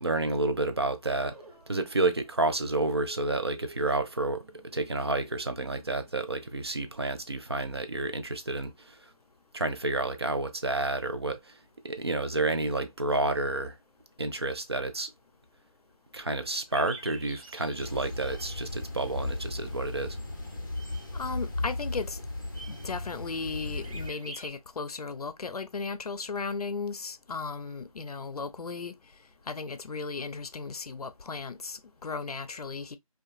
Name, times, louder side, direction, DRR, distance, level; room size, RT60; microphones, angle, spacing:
voice 1, 0.0-1.4 1.7-4.4 4.7-9.1 9.5-11.6 11.8-13.8 14.2-15.1 16.1-20.2, right 2 dB, 45° right, 0.4 m, -30 dB
sound 1, 1.0-7.5, right 1 dB, 85° right, 1.0 m, -52 dB
sound 2, 16.7-24.5, right 2 dB, 65° right, 1.0 m, -50 dB
sound 3, 17.8-24.1, left 2 dB, 35° left, 0.5 m, -36 dB
voice 2, 21.1-22.2 22.7-28.9 29.5-33.0, left 4 dB, 85° left, 0.5 m, -36 dB
2.6 x 2.3 x 2.5 m
figure-of-eight pair, 170°, 19 cm